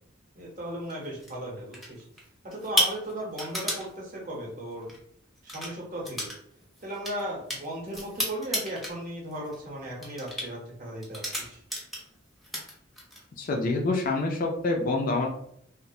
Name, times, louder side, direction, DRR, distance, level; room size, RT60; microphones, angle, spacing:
voice 1, 0.3-2.0 2.4-4.9 5.4-6.3 6.8-11.6, right 1 dB, 40° right, -3 dB, 0.8 m, -36 dB
sound 1, 0.9-1.3 1.7-2.2 2.5-3.8 4.8-5.0 5.4-5.7 6.0-6.4 6.6-8.9 9.3-9.6 10.0-10.5 11.0-12.2 12.4-13.2, equal, ahead, 0.6 m, -31 dB
voice 2, 13.4-15.3, left 2 dB, 45° left, 1 dB, 0.3 m, -26 dB
2.3 x 2.1 x 2.6 m, 0.69 s
head